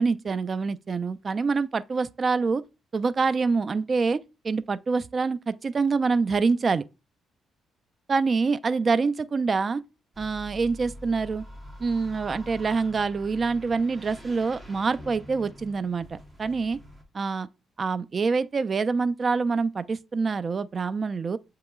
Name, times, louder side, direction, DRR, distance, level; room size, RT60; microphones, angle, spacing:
voice 1, 0.0-2.6 2.9-6.8 8.1-9.8 10.2-11.4 11.8-16.8 17.1-17.5 17.8-21.4, right 4 dB, 40° right, 0.3 m, -26 dB
sound 1, 10.1-17.0, equal, 15° right, 1.0 m, -45 dB
7.9 x 2.9 x 2.3 m
cardioid pair, 90°, 0 cm